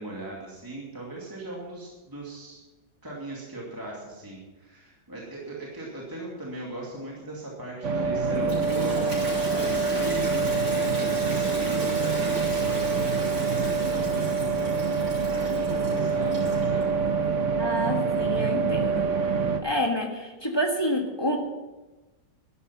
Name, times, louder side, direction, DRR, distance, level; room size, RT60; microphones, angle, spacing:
voice 1, 0.0-2.6 3.0-14.4 15.3-16.9, right 2 dB, 10° right, -4 dB, 2.5 m, -39 dB
sound 1, 7.8-19.6, right 4 dB, 45° right, 1.3 m, -26 dB
Toilet flush, 8.3-16.8, right 1 dB, 85° right, 6.0 m, -36 dB
voice 2, 17.6-19.1 19.6-21.4, equal, 15° left, 2 dB, 1.6 m, -28 dB
13.0 x 12.0 x 5.7 m, 1.1 s
omnidirectional pair, 1.9 m